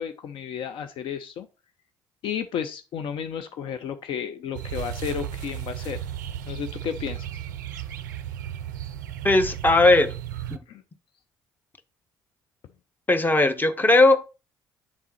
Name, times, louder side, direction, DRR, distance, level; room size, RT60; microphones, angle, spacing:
voice 1, 0.0-1.5 2.2-6.0 6.5-7.4 10.7-10.8, left 8 dB, 60° left, 0.5 m, -32 dB
sound 1, 4.5-10.6, right 10 dB, 85° right, 0.4 m, -34 dB
voice 2, 9.2-10.1 10.5-10.6 13.1-14.3, left 2 dB, 20° left, 0.9 m, -18 dB
7.3 x 3.6 x 4.1 m
hypercardioid pair, 50°, 10 cm